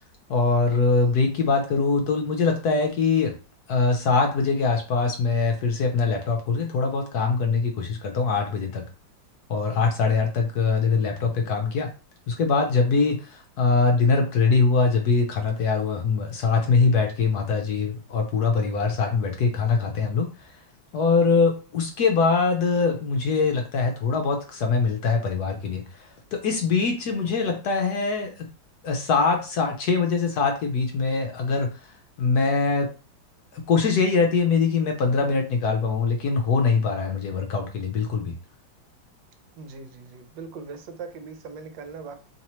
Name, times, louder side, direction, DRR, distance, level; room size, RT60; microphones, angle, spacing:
voice 1, 0.3-3.4 3.7-8.8 9.5-11.9 12.3-20.3 20.9-25.8 26.3-28.5 28.8-31.7 32.2-32.9 33.5-38.3, left 4 dB, 65° left, 3 dB, 1.0 m, -23 dB
voice 2, 39.6-42.1, right 4 dB, 75° right, 8 dB, 1.3 m, -40 dB
4.2 x 3.2 x 3.0 m, 0.34 s
omnidirectional pair, 2.1 m